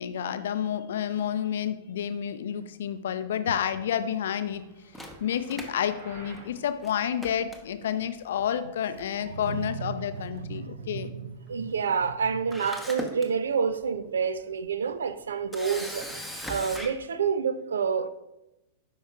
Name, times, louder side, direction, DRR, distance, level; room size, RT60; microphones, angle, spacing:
voice 1, 0.0-4.6 5.2-11.1, left 9 dB, 60° left, 0.5 m, -30 dB
sound 1, 4.4-6.6, right 1 dB, 55° right, 2.1 m, -50 dB
Camera, 4.9-6.5 6.8-6.9 7.2-8.1 9.0-9.3 9.5-9.6 12.1-12.2 12.5-13.3 13.8-14.0 15.5-16.9, equal, 5° right, 1.0 m, -38 dB
voice 2, 9.3-16.1 16.5-18.1, right 6 dB, 70° right, 0.4 m, -29 dB
8.8 x 5.5 x 2.4 m
figure-of-eight pair, 95°, 0 cm